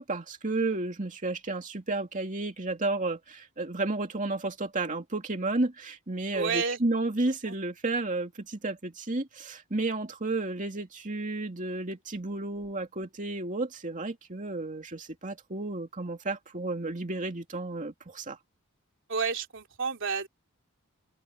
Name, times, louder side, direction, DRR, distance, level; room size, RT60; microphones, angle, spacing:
voice 1, 0.0-18.4, right 2 dB, 40° right, 2.5 m, -32 dB
voice 2, 6.3-6.8 7.4-7.6 19.1-20.3, right 5 dB, 60° right, 3.3 m, -30 dB
open air
head